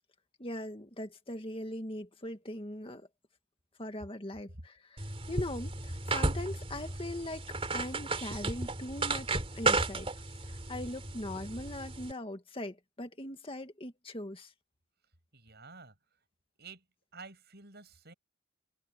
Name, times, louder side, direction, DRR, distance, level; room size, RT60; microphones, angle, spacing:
voice 1, 0.4-3.1 3.8-7.5 7.7-14.5, left 1 dB, 25° left, 2.0 m, -40 dB
sound 1, 5.0-12.1, right 3 dB, 30° right, 3.3 m, -34 dB
voice 2, 15.3-15.9 16.6-16.8 17.1-18.1, right 4 dB, 50° right, 7.6 m, -50 dB
head